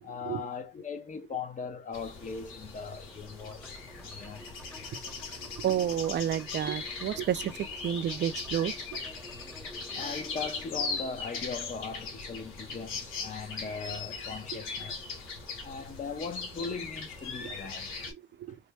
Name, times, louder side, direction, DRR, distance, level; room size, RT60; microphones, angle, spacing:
voice 1, 0.0-4.5 9.9-15.1 15.6-17.9 18.5-18.6, left 5 dB, 40° left, 0.7 m, -39 dB
sound 1, 1.9-18.1, left 4 dB, 90° left, 1.2 m, -39 dB
sound 2, 3.4-11.1, left 1 dB, 5° left, 0.6 m, -51 dB
voice 2, 5.3-9.0 18.1-18.6, right 10 dB, 60° right, 0.5 m, -31 dB
3.4 x 2.2 x 3.3 m
cardioid pair, 90°, 20 cm